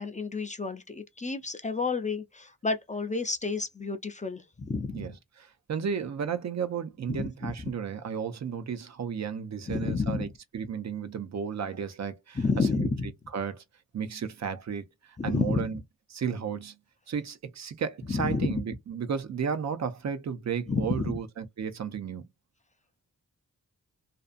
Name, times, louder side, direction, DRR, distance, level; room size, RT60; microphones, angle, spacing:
voice 1, 0.0-5.1 7.1-7.5 9.7-10.3 12.4-13.1 15.2-15.7 18.1-18.6 20.7-21.2, left 4 dB, 25° left, 0.4 m, -30 dB
voice 2, 5.4-10.3 10.5-12.9 13.3-13.6 13.9-15.8 16.1-16.7 17.1-22.2, right 7 dB, 55° right, 0.5 m, -33 dB
2.6 x 2.3 x 2.4 m
cardioid pair, 65°, 32 cm